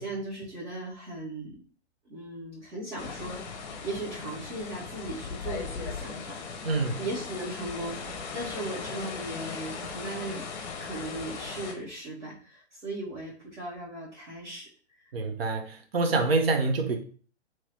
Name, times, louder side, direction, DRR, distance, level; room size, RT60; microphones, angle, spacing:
voice 1, 0.0-1.6 2.1-3.4 3.8-6.3 7.0-10.4 10.8-14.7, right 2 dB, 80° right, -10 dB, 1.6 m, -37 dB
sound 1, 3.0-11.7, left 5 dB, 40° left, 0.7 m, -38 dB
voice 2, 6.6-7.0 15.1-17.0, right 3 dB, 55° right, 5 dB, 0.8 m, -26 dB
3.0 x 2.8 x 3.2 m, 0.42 s
figure-of-eight pair, 115°, 35 cm